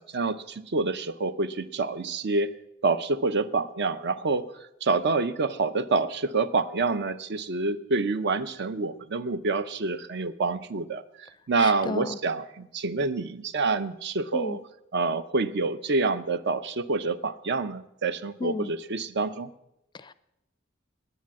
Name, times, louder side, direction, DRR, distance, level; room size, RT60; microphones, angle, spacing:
voice 1, 0.0-2.5 2.8-4.5 4.8-14.6 14.9-19.5, right 3 dB, 60° right, 13 dB, 0.6 m, -27 dB
voice 2, 11.6-12.2 14.3-14.6 18.4-18.7 19.9-20.1, left 3 dB, 25° left, 16 dB, 0.4 m, -33 dB
10.0 x 9.3 x 7.4 m, 0.84 s
head